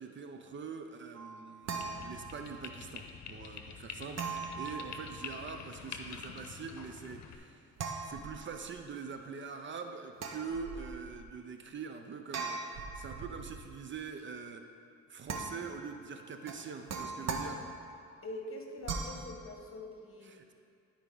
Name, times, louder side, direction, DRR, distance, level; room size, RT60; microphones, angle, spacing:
voice 1, 0.0-7.7 8.0-14.7 15.1-17.6 20.2-20.5, right 5 dB, 40° right, 6 dB, 0.6 m, -44 dB
sound 1, 1.1-2.7 4.1-5.5 7.8-8.8 10.1-11.2 12.3-13.7 15.3-15.9 16.5-18.0 18.8-19.3, right 4 dB, 60° right, 0.9 m, -40 dB
sound 2, 1.8-7.4, left 6 dB, 65° left, 0.8 m, -46 dB
voice 2, 18.2-20.3, left 2 dB, 45° left, 2 dB, 1.2 m, -44 dB
12.5 x 4.9 x 3.9 m, 2.3 s
cardioid pair, 90°, 30 cm